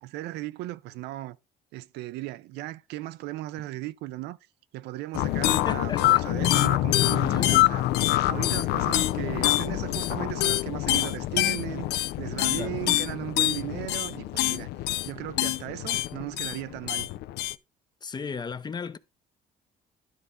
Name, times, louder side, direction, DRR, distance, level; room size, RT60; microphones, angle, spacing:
voice 1, 0.0-1.4 1.7-4.4 4.7-7.9 8.3-14.7 15.1-17.1, right 16 dB, 85° right, 0.5 m, -36 dB
sound 1, 5.1-17.5, left 16 dB, 75° left, 0.4 m, -25 dB
voice 2, 5.6-6.5 7.2-7.5 12.4-13.0 18.0-19.0, left 5 dB, 25° left, 0.5 m, -36 dB
12.0 x 4.1 x 3.7 m
cardioid pair, 110°, 17 cm